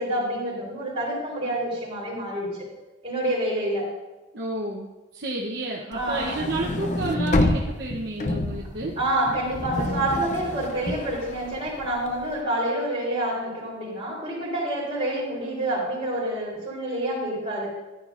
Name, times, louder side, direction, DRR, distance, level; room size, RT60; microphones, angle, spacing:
voice 1, 0.0-2.7 3.0-3.9 5.9-6.3 9.0-17.8, right 1 dB, 30° right, -5 dB, 4.1 m, -28 dB
voice 2, 4.3-4.9 5.1-8.9, right 2 dB, 55° right, -2 dB, 0.9 m, -30 dB
sound 1, 5.9-12.2, left 2 dB, 35° left, 0.7 m, -28 dB
14.0 x 10.5 x 2.5 m, 1.1 s
head